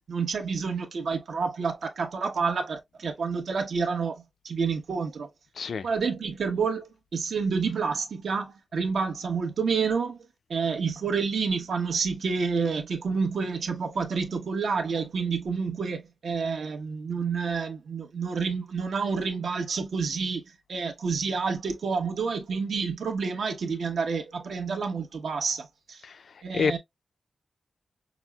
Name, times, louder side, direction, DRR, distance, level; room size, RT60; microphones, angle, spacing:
voice 1, 0.1-5.3 5.8-10.2 10.5-20.4 20.7-26.0 26.4-26.8, right 5 dB, 80° right, 0.9 m, -29 dB
voice 2, 5.6-5.9 26.0-26.1 26.5-26.8, left 5 dB, 70° left, 0.3 m, -27 dB
5.9 x 2.0 x 2.2 m
wide cardioid pair, 150°, 0 cm